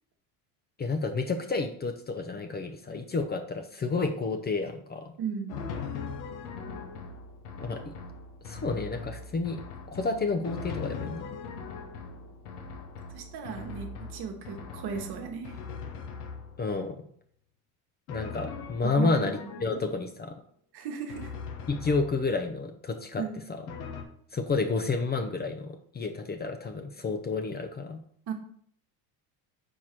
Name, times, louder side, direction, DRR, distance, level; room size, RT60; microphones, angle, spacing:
voice 1, 0.8-5.1 7.6-7.8 8.4-9.6 9.9-11.3 16.6-17.0 18.1-20.4 21.7-23.2 24.3-28.0, left 3 dB, 20° left, 5 dB, 0.6 m, -30 dB
voice 2, 5.2-5.7 13.1-15.5 18.8-19.4 19.6-19.9 20.7-21.3 23.2-23.4 28.3-28.4, right 6 dB, 60° right, 4 dB, 1.3 m, -36 dB
Drum, 5.5-16.9 18.1-20.0 21.1-22.6 23.7-24.0, left 5 dB, 85° left, 1.0 m, -40 dB
4.7 x 4.6 x 4.4 m, 0.62 s
supercardioid pair, 85°, 45 cm